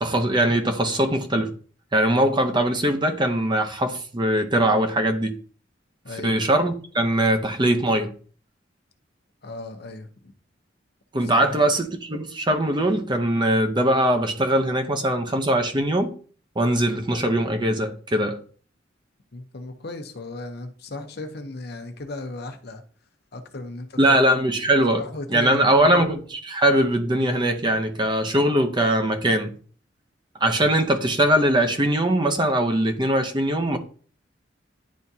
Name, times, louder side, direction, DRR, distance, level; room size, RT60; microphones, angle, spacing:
voice 1, 0.0-1.5 1.9-5.4 6.2-8.1 11.1-16.1 16.6-18.4 24.0-25.0 25.3-29.6 30.4-33.8, right 1 dB, 25° right, 0.7 m, -21 dB
voice 2, 6.0-6.4 9.4-10.3 11.2-11.5 19.3-22.8 23.3-24.2 25.0-26.0, left 2 dB, 60° left, 0.8 m, -36 dB
10.5 x 3.5 x 2.7 m
head